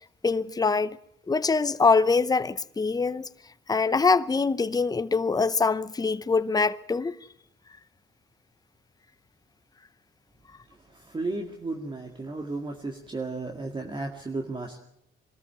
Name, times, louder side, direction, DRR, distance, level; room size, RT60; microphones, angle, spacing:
voice 1, 0.2-1.0 1.3-3.3 3.7-7.1, left 4 dB, 20° left, 0.8 m, -24 dB
voice 2, 10.7-14.8, right 3 dB, 25° right, 2.0 m, -34 dB
22.5 x 13.5 x 9.2 m
cardioid pair, 90°, 20 cm